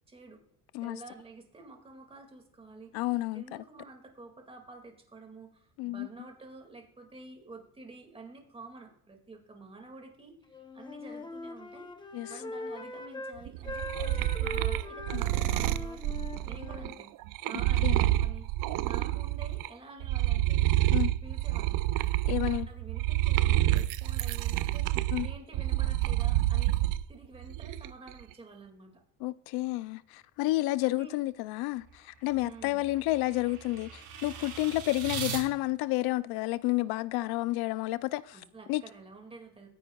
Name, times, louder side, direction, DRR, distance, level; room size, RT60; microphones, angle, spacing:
voice 1, 0.1-0.4 0.8-2.9 3.3-11.9 12.3-16.0 16.4-17.1 17.5-18.5 18.8-20.8 21.2-21.8 22.5-26.8 27.1-29.0 30.8-31.2 32.4-32.8 38.3-39.7, right 3 dB, 15° right, 2.2 m, -49 dB
voice 2, 2.9-3.6 5.8-6.1 12.1-12.3 15.1-15.2 17.8-18.0 20.9-21.1 22.2-22.7 25.1-25.3 29.2-38.4 38.7-38.8, left 18 dB, 85° left, 0.5 m, -30 dB
Wind instrument woodwind instrument, 10.5-13.4 13.6-17.0, left 2 dB, 10° left, 0.9 m, -41 dB
sound 1, 13.5-19.7 20.0-27.0 27.4-28.1, right 16 dB, 60° right, 0.5 m, -28 dB
sound 2, 31.8-35.4, right 6 dB, 80° right, 3.8 m, -40 dB
23.5 x 10.0 x 2.3 m
cardioid pair, 150°, 36 cm